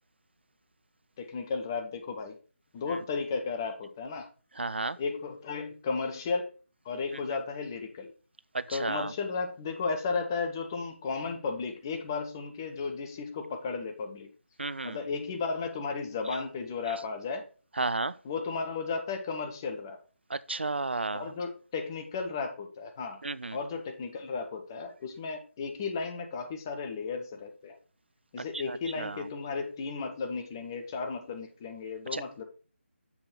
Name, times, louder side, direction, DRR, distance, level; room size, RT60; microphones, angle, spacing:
voice 1, 1.2-2.4 2.7-4.3 5.0-6.5 6.8-8.1 8.7-14.3 14.8-17.5 18.2-20.0 21.1-23.2 23.5-27.8 28.3-32.4, left 4 dB, 20° left, 0.8 m, -34 dB
voice 2, 4.6-5.0 8.5-9.1 14.6-15.0 17.8-18.2 20.3-21.3 23.2-23.6 28.5-29.3 32.1-32.2, right 3 dB, 60° right, 0.4 m, -33 dB
7.1 x 5.2 x 4.1 m
figure-of-eight pair, 155°, 7 cm